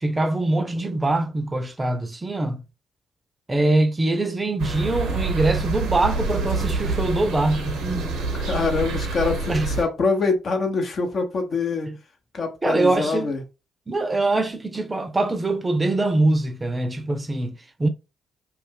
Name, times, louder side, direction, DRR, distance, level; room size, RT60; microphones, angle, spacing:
voice 1, 0.0-2.6 3.5-8.2 9.5-9.7 11.9-12.0 12.6-13.3 13.9-17.9, right 2 dB, 25° right, 0.5 m, -23 dB
sound 1, 4.6-9.8, right 3 dB, 70° right, 0.6 m, -27 dB
voice 2, 8.4-11.9 12.3-13.4, left 4 dB, 50° left, 0.8 m, -24 dB
2.5 x 2.3 x 3.4 m
hypercardioid pair, 40°, 0 cm